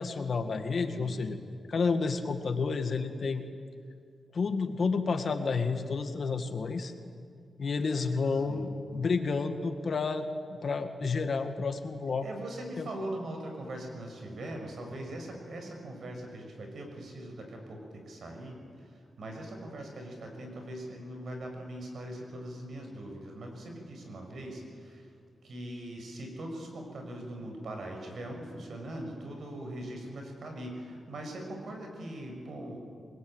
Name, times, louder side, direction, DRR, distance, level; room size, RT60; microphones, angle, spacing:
voice 1, 0.0-1.4 1.7-3.4 4.3-6.9 7.6-12.3 12.8-12.9, left 4 dB, 60° left, 7 dB, 2.0 m, -30 dB
voice 2, 12.2-25.1 25.4-32.8, right 1 dB, 70° right, 3 dB, 6.4 m, -41 dB
25.0 x 21.0 x 9.1 m, 2.2 s
cardioid pair, 75°, 0 cm